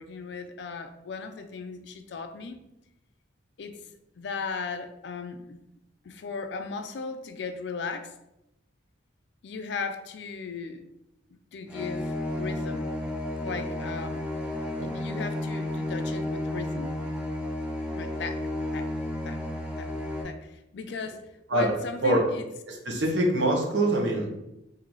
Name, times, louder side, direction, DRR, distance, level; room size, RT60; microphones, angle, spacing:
voice 1, 0.0-2.6 3.6-3.8 4.2-5.6 6.0-8.1 9.4-10.8 11.5-13.0 13.4-14.3 14.8-17.0 17.9-18.4 18.7-18.9 19.2-19.4 19.8-19.9 20.2-22.4, left 4 dB, 60° left, 8 dB, 0.4 m, -37 dB
sound 1, 11.7-20.2, left 1 dB, 5° right, 0.5 m, -32 dB
voice 2, 22.7-24.3, right 1 dB, 65° right, -1 dB, 0.9 m, -24 dB
3.9 x 2.7 x 3.0 m, 0.86 s
head